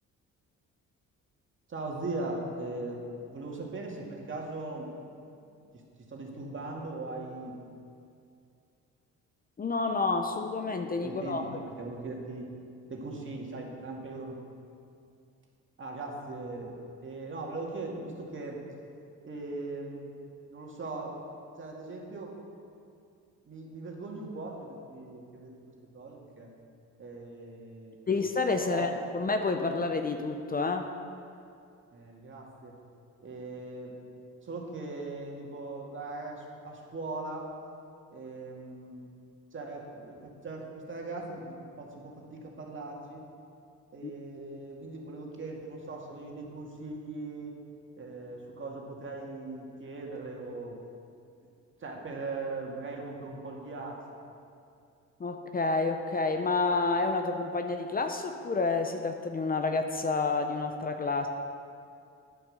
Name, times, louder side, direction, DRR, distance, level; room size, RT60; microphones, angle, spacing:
voice 1, 1.7-4.9 5.7-5.8 6.1-7.6 11.0-12.5 12.9-14.4 15.8-18.6 19.2-20.1 20.5-21.2 21.6-22.3 23.4-25.5 25.9-26.5 27.0-28.1 28.6-29.0 31.9-32.7 33.2-33.9 34.4-37.5 38.1-39.0 39.5-43.2 43.9-47.5 48.0-50.8 51.8-54.0, right 2 dB, 40° right, -1 dB, 2.2 m, -39 dB
voice 2, 9.6-11.5 28.1-30.9 44.0-44.1 55.2-61.3, left 3 dB, 30° left, 6 dB, 0.7 m, -29 dB
9.3 x 9.0 x 6.6 m, 2.4 s
cardioid pair, 90°, 30 cm